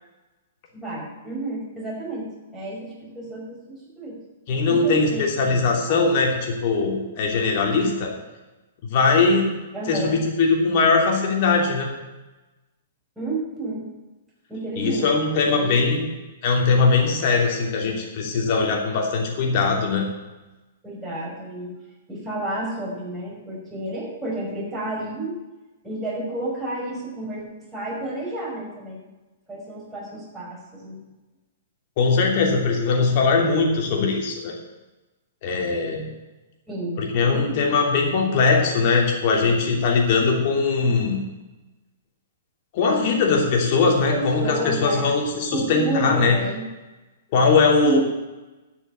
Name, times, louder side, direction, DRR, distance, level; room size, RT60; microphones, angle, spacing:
voice 1, 0.7-4.2 4.7-5.6 5.9-6.0 9.7-10.2 13.2-13.9 14.5-15.1 15.4-15.9 20.8-21.7 22.1-25.4 25.8-27.4 27.7-29.0 29.5-31.0 36.7-37.7 44.1-45.0 45.5-46.6 47.8-48.0, right 2 dB, 5° right, -6 dB, 5.4 m, -31 dB
voice 2, 4.5-8.1 8.9-9.6 9.9-11.9 14.8-16.1 16.4-20.0 32.0-34.5 35.4-36.1 37.0-41.2 42.7-46.4 47.3-48.0, left 4 dB, 45° left, 1 dB, 2.9 m, -20 dB
12.0 x 6.4 x 8.5 m, 1.1 s
figure-of-eight pair, 110°, 0 cm